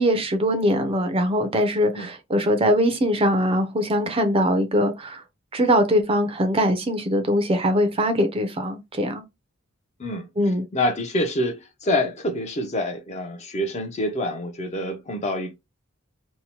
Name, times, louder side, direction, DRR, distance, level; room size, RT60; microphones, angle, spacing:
voice 1, 0.0-5.2 5.5-9.2 10.4-10.6, equal, 25° right, 0.4 m, -22 dB
voice 2, 10.7-15.5, left 1 dB, 35° left, 0.5 m, -26 dB
2.8 x 2.1 x 2.9 m
head